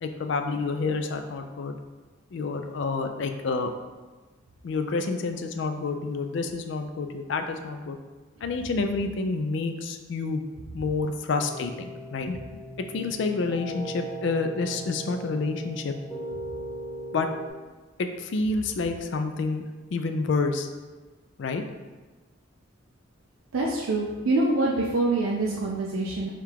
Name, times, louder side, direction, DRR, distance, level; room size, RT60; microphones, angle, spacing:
voice 1, 0.0-1.8 2.3-3.7 4.6-8.0 8.4-10.4 10.7-12.4 12.9-15.9 17.1-17.3 18.0-19.6 19.9-20.7 21.4-21.6, left 3 dB, 60° left, 6 dB, 0.3 m, -28 dB
sound 1, 11.3-17.5, right 2 dB, 15° left, 0.6 m, -39 dB
voice 2, 23.5-26.3, right 2 dB, 75° right, -3 dB, 0.5 m, -25 dB
3.5 x 2.4 x 4.5 m, 1.3 s
head